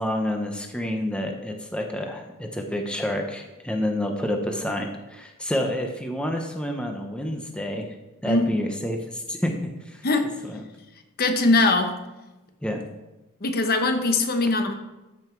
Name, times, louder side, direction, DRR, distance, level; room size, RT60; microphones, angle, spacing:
voice 1, 0.0-8.0 8.2-10.0 10.4-10.6 12.6-12.8, left 1 dB, 5° left, 2 dB, 0.8 m, -29 dB
voice 2, 11.2-11.9 13.4-14.7, left 3 dB, 45° left, 6 dB, 1.0 m, -21 dB
13.5 x 5.5 x 4.6 m, 1.0 s
head